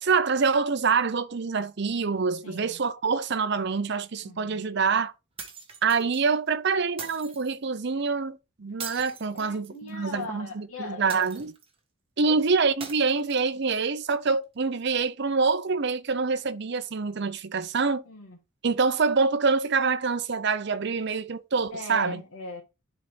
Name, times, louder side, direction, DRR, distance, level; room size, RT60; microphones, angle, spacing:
voice 1, 0.0-5.1 5.8-11.5 12.2-18.0 18.6-22.2, right 4 dB, 50° right, 0.6 m, -26 dB
voice 2, 2.4-2.8 4.2-4.6 9.3-11.3 12.2-12.3 18.0-18.4 21.7-22.6, left 3 dB, 75° left, 1.7 m, -39 dB
sound 1, 5.4-6.2 7.0-7.6 8.8-10.0 11.1-11.8 12.8-13.8, right 6 dB, 25° right, 1.3 m, -41 dB
10.5 x 4.0 x 3.3 m
head